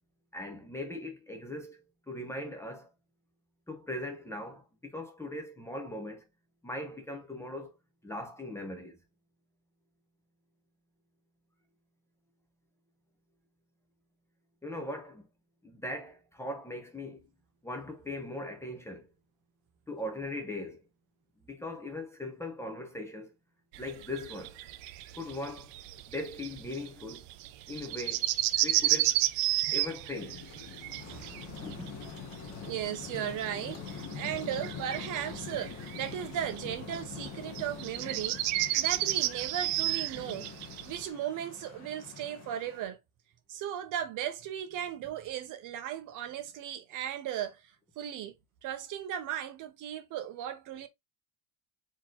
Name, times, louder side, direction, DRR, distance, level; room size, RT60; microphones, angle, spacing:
voice 1, 0.3-2.9 3.7-6.3 6.6-7.7 8.0-9.0 14.6-15.3 15.6-17.3 17.6-19.1 19.9-20.8 21.4-23.3 23.8-24.6 25.1-25.7 26.1-27.2 27.7-28.3 28.6-29.2 29.7-30.4 31.6-32.0, left 1 dB, 5° left, 0.7 m, -39 dB
sound 1, 23.7-41.0, right 15 dB, 85° right, 0.7 m, -33 dB
sound 2, 30.2-36.5, left 7 dB, 80° left, 1.5 m, -49 dB
voice 2, 30.9-31.7 32.7-40.5 40.8-43.0 43.5-48.3 48.6-50.9, right 10 dB, 50° right, 0.7 m, -37 dB
sound 3, 31.0-42.8, left 6 dB, 40° left, 1.2 m, -45 dB
4.5 x 3.0 x 3.8 m
cardioid pair, 180°, 42 cm